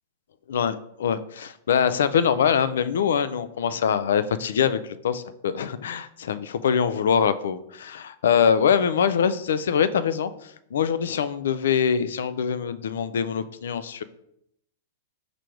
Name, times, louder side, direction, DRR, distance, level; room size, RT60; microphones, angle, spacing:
voice 1, 0.5-4.8 5.0-10.3 10.7-14.0, left 7 dB, 80° left, 14 dB, 0.3 m, -23 dB
4.7 x 2.5 x 4.5 m, 0.77 s
hypercardioid pair, 125°, 0 cm